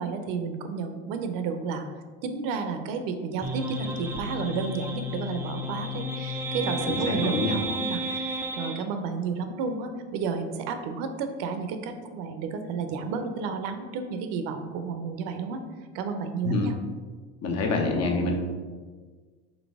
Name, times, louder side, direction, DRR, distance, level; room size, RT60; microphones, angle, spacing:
voice 1, 0.0-1.9 2.2-15.6 15.9-16.7, right 5 dB, 65° right, 7 dB, 0.6 m, -32 dB
sound 1, 3.4-8.8, equal, 5° right, 0.4 m, -32 dB
voice 2, 6.8-7.5 16.4-16.7 17.4-18.4, left 3 dB, 45° left, 2 dB, 0.9 m, -26 dB
4.0 x 3.2 x 3.5 m, 1.5 s
hypercardioid pair, 80°, 36 cm